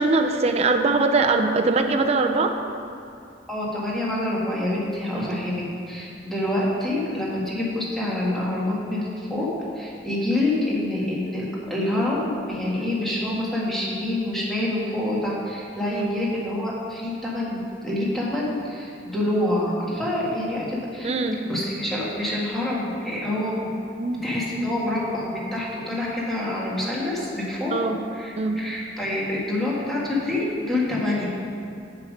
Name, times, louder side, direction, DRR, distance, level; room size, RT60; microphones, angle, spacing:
voice 1, 0.0-2.6 5.1-5.4 15.9-16.1 21.0-21.4 24.0-24.2 24.5-24.7 27.7-28.0 28.4-28.6, right 3 dB, 35° right, 5 dB, 0.5 m, -22 dB
voice 2, 3.5-9.5 9.8-21.1 21.4-23.7 24.2-27.7 28.1-31.3, left 1 dB, ahead, -6 dB, 1.7 m, -27 dB
7.4 x 7.2 x 5.2 m, 2.5 s
head